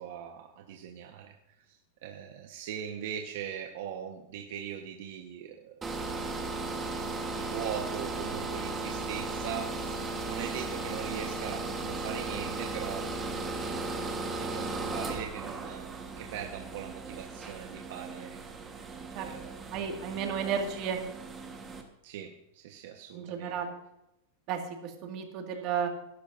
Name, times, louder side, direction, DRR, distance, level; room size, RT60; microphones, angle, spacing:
voice 1, 0.0-1.8 2.0-5.9 7.4-13.1 14.4-18.5 18.8-20.6 22.0-23.6, right 9 dB, 65° right, 2 dB, 1.2 m, -41 dB
sound 1, 5.8-21.8, right 3 dB, 15° right, 1.4 m, -36 dB
voice 2, 19.7-21.0 23.1-23.7 24.5-25.9, right 7 dB, 40° right, 3 dB, 2.0 m, -33 dB
18.0 x 12.0 x 2.6 m, 0.86 s
supercardioid pair, 160°, 0 cm